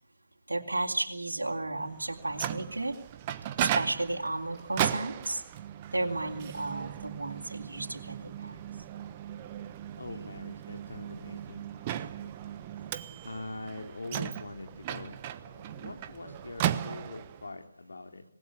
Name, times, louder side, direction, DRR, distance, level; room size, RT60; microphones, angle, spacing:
voice 1, 0.5-3.0 3.6-5.4 5.9-8.7, right 2 dB, 75° right, -1 dB, 3.8 m, -33 dB
Microwave oven, 2.0-17.5, right 11 dB, 25° right, 1.1 m, -36 dB
voice 2, 10.0-11.6 11.9-12.5 13.2-18.2, left 2 dB, 65° left, 5 dB, 3.8 m, -43 dB
26.5 x 20.0 x 8.5 m, 0.76 s
figure-of-eight pair, 150°, 0 cm